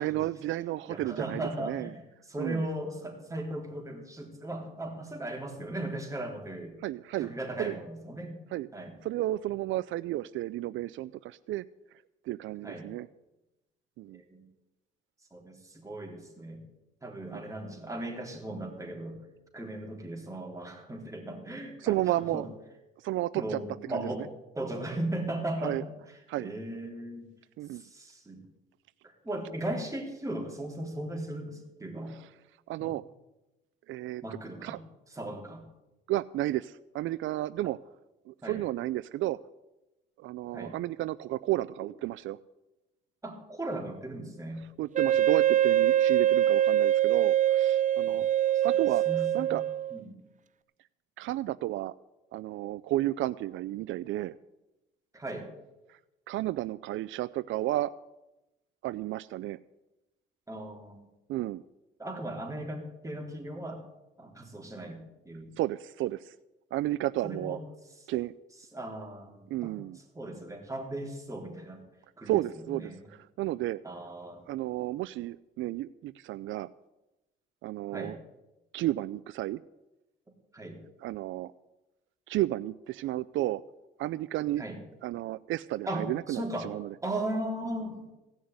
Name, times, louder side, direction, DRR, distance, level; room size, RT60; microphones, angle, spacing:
voice 1, 0.0-1.9 2.4-2.6 6.8-7.3 7.6-7.8 8.5-8.7 9.0-11.6 12.3-13.1 14.0-14.2 17.3-17.4 21.8-22.5 23.0-23.6 23.9-24.2 25.6-25.8 26.3-26.5 27.6-27.8 32.7-33.0 33.9-34.2 34.6-34.8 36.1-37.8 38.3-39.4 40.2-42.4 44.8-48.3 48.6-49.0 49.3-49.6 51.2-51.9 52.3-54.3 55.9-56.0 56.3-57.9 58.8-59.6 61.3-61.6 65.6-66.3 66.7-67.6 68.1-68.3 69.5-70.0 72.3-73.8 74.5-76.7 77.6-78.2 78.7-79.6 81.0-81.5 82.3-83.6 84.0-84.6 85.0-86.9, right 15 dB, 80° right, 15 dB, 0.4 m, -32 dB
voice 2, 0.9-2.0 2.3-6.7 7.2-8.4 8.7-8.9 12.6-12.9 14.1-14.5 15.3-16.6 17.0-19.2 19.5-22.5 23.3-24.3 24.6-25.9 26.4-27.3 27.7-28.4 29.0-32.1 34.2-34.8 35.1-35.6 38.4-38.6 40.5-40.8 43.2-44.6 48.1-48.2 48.5-49.6 49.9-50.2 55.1-55.5 60.5-61.0 62.0-63.8 64.2-65.5 67.2-67.6 68.7-69.8 70.1-71.8 72.2-73.0 73.8-74.5 77.9-78.2 80.5-80.8 84.6-84.8 85.9-86.8 87.0-88.1, right 1 dB, 15° right, 1 dB, 3.7 m, -37 dB
Wind instrument woodwind instrument, 44.9-50.0, right 11 dB, 40° right, 0.6 m, -24 dB
16.5 x 6.3 x 9.4 m, 0.98 s
cardioid pair, 90°, 20 cm